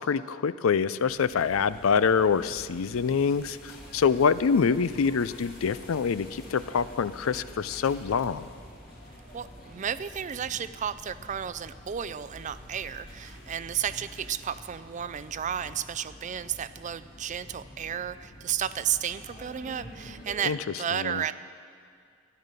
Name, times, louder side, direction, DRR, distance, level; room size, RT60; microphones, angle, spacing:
voice 1, 0.0-8.5 20.4-20.6 20.9-21.2, left 6 dB, 85° left, 16 dB, 0.4 m, -25 dB
sound 1, 1.1-20.5, equal, 45° left, 2.8 m, -48 dB
voice 2, 9.3-21.3, right 9 dB, 35° right, 15 dB, 0.4 m, -33 dB
14.0 x 11.0 x 6.7 m, 2.2 s
head